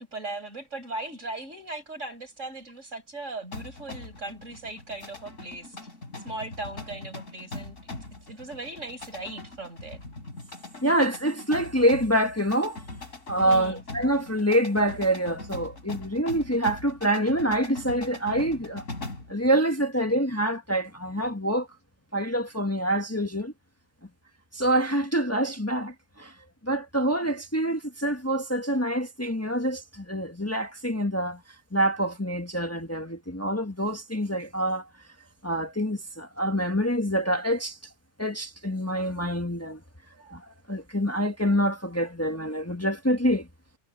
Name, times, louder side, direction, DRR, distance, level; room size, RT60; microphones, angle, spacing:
voice 1, 0.0-5.9 6.2-10.0 13.4-13.8, right 2 dB, 70° right, 7.4 m, -38 dB
sound 1, 3.5-19.4, left 2 dB, 85° left, 4.8 m, -41 dB
voice 2, 10.8-12.8 13.3-18.8 19.3-21.7 22.1-23.5 24.5-26.3 26.6-31.4 31.7-34.9 35.4-37.8 38.2-39.8 40.2-43.5, right 1 dB, 10° left, 1.6 m, -26 dB
omnidirectional pair, 1.3 m